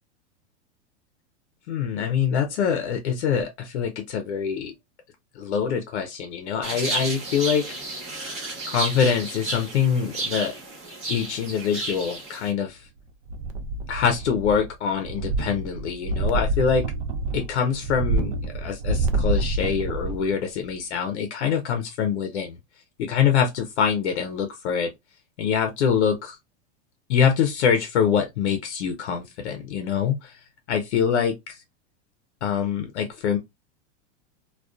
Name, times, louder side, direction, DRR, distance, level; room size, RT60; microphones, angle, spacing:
voice 1, 1.7-4.7 5.4-7.7 8.7-10.5 11.1-12.9 13.9-16.8 17.3-22.6 23.0-24.9 25.4-26.4 27.1-30.4 30.7-31.6 32.4-33.4, left 7 dB, 75° left, 0.6 m, -24 dB
sound 1, 6.6-12.5, right 2 dB, 20° right, 0.9 m, -32 dB
sound 2, 13.3-14.7 15.0-20.3 20.7-20.8, right 2 dB, 55° right, 0.5 m, -27 dB
2.4 x 2.3 x 2.2 m
supercardioid pair, 175°, 35 cm